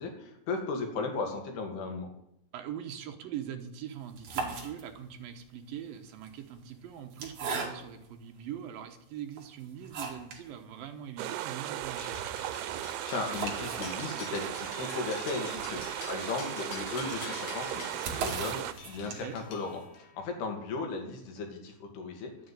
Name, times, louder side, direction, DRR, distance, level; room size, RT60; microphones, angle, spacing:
voice 1, 0.0-2.1 12.9-15.8 16.1-22.3, left 4 dB, 80° left, 4 dB, 4.3 m, -36 dB
voice 2, 2.5-12.2 15.7-15.9 19.1-19.4, right 9 dB, 70° right, 6 dB, 2.7 m, -42 dB
sound 1, 4.0-5.2 6.1-8.1 8.8-8.9 9.3-10.5 10.8-10.9 11.2-11.3 11.6-19.5, right 4 dB, 50° right, 3.4 m, -40 dB
sound 2, 11.2-18.7, right 13 dB, 85° right, 2.8 m, -37 dB
sound 3, 12.0-20.1, left 6 dB, 55° left, 2.7 m, -46 dB
12.0 x 9.4 x 9.4 m, 0.78 s
omnidirectional pair, 4.6 m